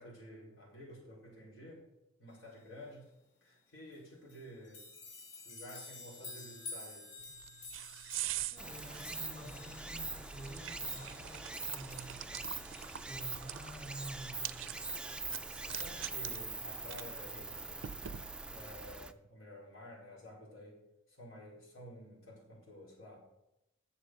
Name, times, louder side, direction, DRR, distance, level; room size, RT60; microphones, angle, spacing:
voice 1, 0.0-1.8 2.2-3.1 3.4-4.8 5.4-7.1 15.6-17.6 18.4-20.8 21.1-23.2, equal, 80° left, -3 dB, 4.5 m, -51 dB
sound 1, 3.9-4.0 4.3-13.3, left 3 dB, 60° left, 1.6 m, -51 dB
sound 2, 7.2-18.6, right 12 dB, 70° right, 0.4 m, -46 dB
voice 2, 8.5-12.4 13.1-14.8, right 1 dB, 30° left, -3 dB, 2.4 m, -49 dB
Stream, 8.6-19.1, right 3 dB, 5° right, 0.3 m, -43 dB
10.5 x 7.1 x 6.4 m, 0.89 s
head